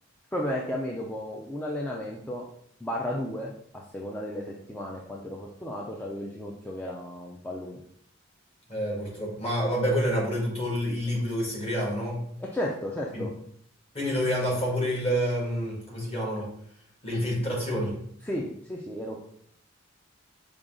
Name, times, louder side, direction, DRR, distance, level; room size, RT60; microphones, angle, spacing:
voice 1, 0.3-2.5 2.8-7.8 12.5-13.3 18.2-19.2, left 1 dB, 10° left, -3 dB, 0.4 m, -34 dB
voice 2, 8.7-12.2 13.1-13.3 13.9-16.5 17.0-18.0, equal, 30° left, -4 dB, 1.6 m, -28 dB
5.0 x 2.3 x 3.7 m, 0.67 s
head